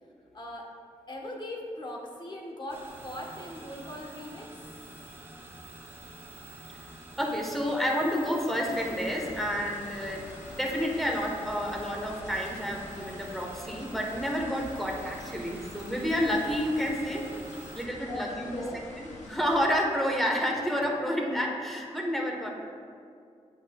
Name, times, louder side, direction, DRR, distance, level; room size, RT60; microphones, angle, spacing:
voice 1, 0.3-0.7 1.1-4.5 18.1-18.8, left 1 dB, 40° left, 0 dB, 1.1 m, -39 dB
sound 1, 2.7-17.9, right 2 dB, 20° right, 1.1 m, -48 dB
voice 2, 7.2-10.2 10.5-17.2 17.7-18.6 19.0-22.5, equal, ahead, -1 dB, 1.1 m, -29 dB
sound 2, 8.6-19.6, left 2 dB, 85° left, 0.8 m, -47 dB
8.6 x 5.4 x 2.3 m, 2.3 s
cardioid pair, 70°, 12 cm